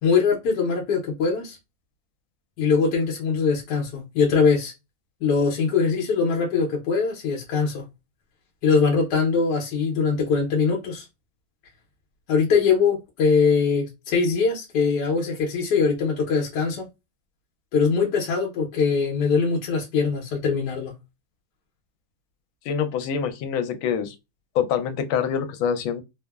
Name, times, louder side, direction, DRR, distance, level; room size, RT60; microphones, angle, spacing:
voice 1, 0.0-1.6 2.6-4.7 5.2-7.8 8.6-11.1 12.3-16.9 17.7-20.9, left 5 dB, 70° left, 1.1 m, -22 dB
voice 2, 22.7-24.1 24.5-26.0, left 7 dB, 85° left, 1.4 m, -25 dB
3.4 x 2.0 x 2.2 m
omnidirectional pair, 2.2 m